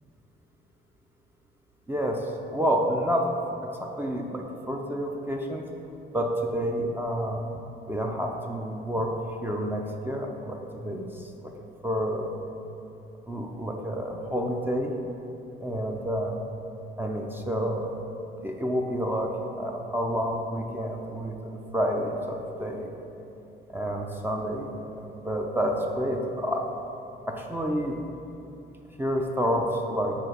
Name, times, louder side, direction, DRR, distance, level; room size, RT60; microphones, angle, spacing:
voice 1, 2.5-3.2 4.0-5.6 6.1-7.4 7.9-9.1 9.4-11.1 11.8-12.3 13.3-14.9 15.6-16.4 17.0-17.9 18.4-19.3 19.6-22.9 23.7-24.7 25.3-26.6 27.3-27.9 29.0-30.1, equal, 10° right, 1 dB, 0.5 m, -29 dB
4.5 x 4.0 x 5.2 m, 2.8 s
cardioid pair, 90°, 20 cm